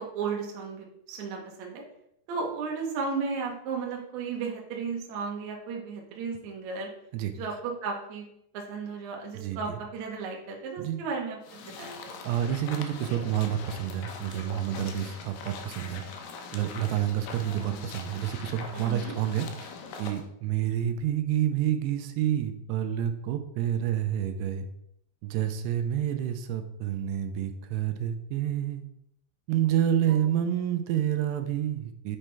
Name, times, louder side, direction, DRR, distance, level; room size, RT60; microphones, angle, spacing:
voice 1, 0.0-1.8 2.3-6.9 7.3-8.2 8.5-12.2 17.4-17.8 18.7-19.1 30.1-30.3, right 5 dB, 65° right, 0 dB, 2.0 m, -35 dB
sound 1, 11.4-20.2, left 5 dB, 80° left, 2.0 m, -42 dB
voice 2, 12.2-16.0 16.5-19.7 20.0-24.7 25.2-28.8 29.5-32.2, right 10 dB, 85° right, 7 dB, 2.7 m, -28 dB
7.4 x 5.3 x 3.4 m, 0.75 s
omnidirectional pair, 4.7 m